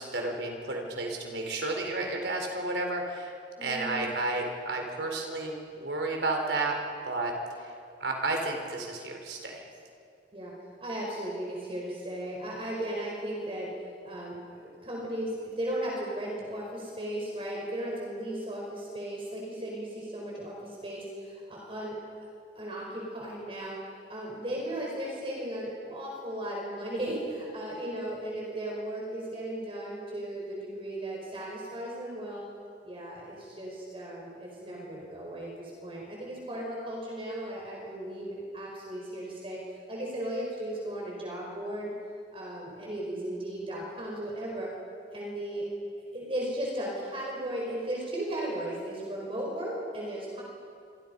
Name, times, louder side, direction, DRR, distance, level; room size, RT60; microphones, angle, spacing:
voice 1, 0.0-3.3 3.6-6.8 7.1-7.3 7.6-7.7 8.0-9.7, right 2 dB, 90° right, 2 dB, 4.4 m, -32 dB
voice 2, 3.6-4.0 10.3-10.5 10.8-22.0 22.5-23.8 24.1-32.4 32.8-39.6 39.9-41.9 42.3-44.7 45.1-45.7 46.1-50.4, right 1 dB, 30° right, -3 dB, 5.1 m, -36 dB
28.0 x 25.5 x 5.5 m, 2.4 s
head